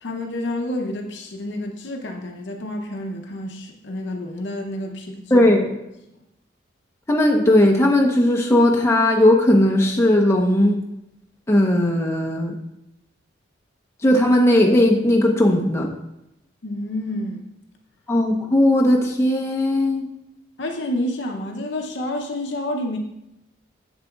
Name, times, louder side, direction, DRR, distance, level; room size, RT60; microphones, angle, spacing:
voice 1, 0.0-5.5 16.6-17.5 20.6-23.0, left 1 dB, 70° left, 3 dB, 0.6 m, -29 dB
voice 2, 5.3-5.7 7.1-10.8 11.5-12.6 14.0-15.9 18.1-20.0, left 1 dB, 15° left, -1 dB, 0.8 m, -17 dB
7.9 x 6.6 x 2.3 m, 0.87 s
head